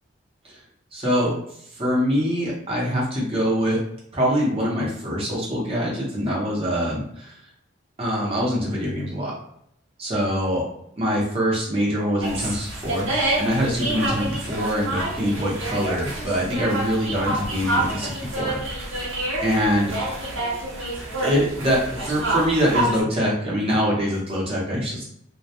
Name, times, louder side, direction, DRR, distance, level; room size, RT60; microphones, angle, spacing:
voice 1, 0.9-1.3 1.8-3.8 4.1-7.3 8.0-9.3 10.0-10.6 11.0-13.1 13.4-18.6 18.9-19.0 19.4-20.2 21.2-25.0, equal, 30° right, -4 dB, 0.7 m, -24 dB
sound 1, 12.2-23.0, right 1 dB, 75° right, 0.8 m, -28 dB
2.2 x 2.1 x 2.8 m, 0.72 s
head